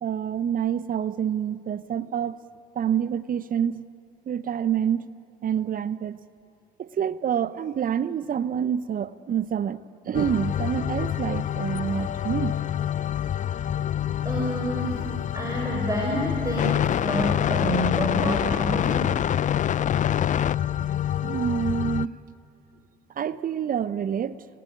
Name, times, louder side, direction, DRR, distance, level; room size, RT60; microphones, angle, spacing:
voice 1, 0.0-2.4 2.7-3.9 4.3-5.1 5.4-6.2 6.8-9.8 10.0-12.6 21.2-22.2 23.2-24.5, right 8 dB, 40° right, 16 dB, 0.9 m, -27 dB
sound 1, 10.1-22.1, left 10 dB, 35° left, 0.5 m, -26 dB
voice 2, 14.2-15.1 15.3-19.2, equal, 15° right, -1 dB, 5.7 m, -28 dB
27.5 x 19.0 x 8.8 m, 2.6 s
hypercardioid pair, 60°, 21 cm